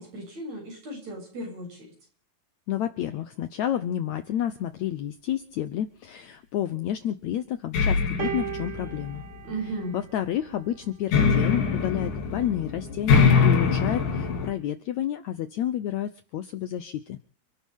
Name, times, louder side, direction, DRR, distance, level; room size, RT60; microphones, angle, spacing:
voice 1, 0.0-1.9 9.4-10.0, right 2 dB, 45° right, 1 dB, 9.1 m, -35 dB
voice 2, 2.7-9.2 9.9-17.2, left 11 dB, 90° left, 11 dB, 1.6 m, -30 dB
sound 1, 7.7-9.7 11.1-14.5, left 5 dB, 55° left, 3.7 m, -23 dB
sound 2, 8.2-10.7 11.7-11.9, right 12 dB, 90° right, 4.6 m, -37 dB
29.5 x 11.5 x 3.7 m, 0.42 s
omnidirectional pair, 4.5 m